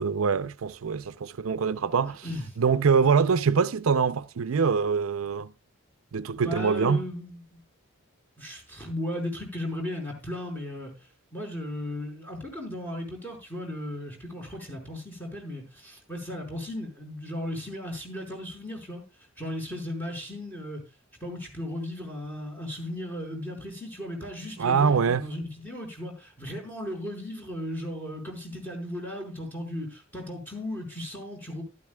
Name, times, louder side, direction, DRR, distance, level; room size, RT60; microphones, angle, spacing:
voice 1, 0.0-2.2 2.6-5.5 6.1-7.0 24.6-25.3, right 5 dB, 75° right, 0.5 m, -24 dB
voice 2, 6.4-7.6 8.4-10.9 11.3-19.0 19.4-20.8 21.2-31.6, left 1 dB, 10° left, 5.2 m, -36 dB
15.0 x 12.5 x 2.3 m
head